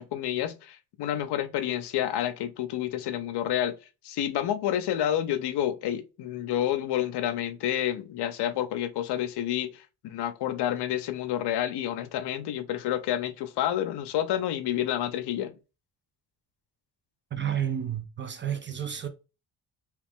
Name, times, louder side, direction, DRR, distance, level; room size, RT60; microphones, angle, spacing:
voice 1, 0.0-3.8 4.0-15.6, left 11 dB, 70° left, 0.6 m, -29 dB
voice 2, 17.3-19.1, right 9 dB, 30° right, 0.4 m, -31 dB
3.0 x 2.4 x 3.5 m
cardioid pair, 105°, 42 cm